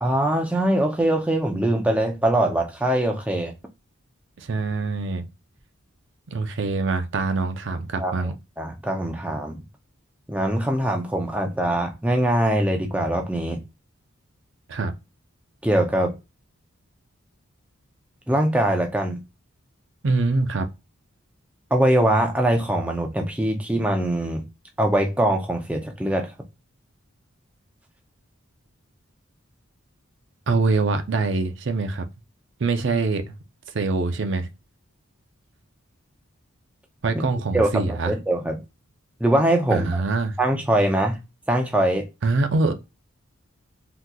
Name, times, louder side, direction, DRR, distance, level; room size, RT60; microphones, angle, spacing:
voice 1, 0.0-3.5 8.0-8.3 8.6-9.6 10.3-13.6 15.6-16.1 18.3-19.2 21.7-24.4 24.8-26.3 37.5-38.5 39.2-39.9 40.4-41.2 41.5-42.0, right 1 dB, 5° right, 0.5 m, -22 dB
voice 2, 4.4-5.2 6.3-8.3 14.7-14.9 20.0-20.7 30.5-32.1 32.6-33.3 33.7-34.5 37.0-38.1 39.7-40.3 42.2-42.7, right 3 dB, 55° right, 0.5 m, -24 dB
3.6 x 2.8 x 2.3 m
head